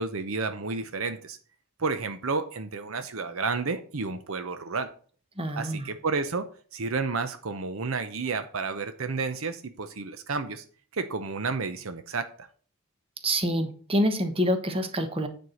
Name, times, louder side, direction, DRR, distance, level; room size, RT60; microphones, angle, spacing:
voice 1, 0.0-1.4 1.8-4.9 5.6-10.6 10.9-12.5, right 4 dB, 65° right, 9 dB, 0.8 m, -31 dB
voice 2, 5.4-5.9 13.2-15.3, equal, 25° right, 7 dB, 1.2 m, -26 dB
9.5 x 4.5 x 6.3 m, 0.42 s
head